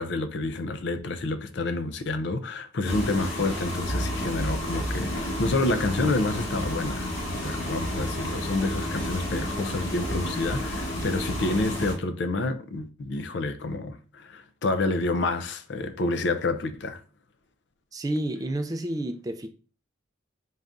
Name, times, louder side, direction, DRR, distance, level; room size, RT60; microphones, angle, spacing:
voice 1, 0.0-17.0, left 2 dB, 65° left, 0.4 m, -29 dB
sound 1, 2.8-11.9, left 1 dB, 90° left, 1.5 m, -30 dB
voice 2, 17.9-19.5, right 1 dB, 20° right, 0.3 m, -30 dB
4.0 x 2.5 x 3.4 m
head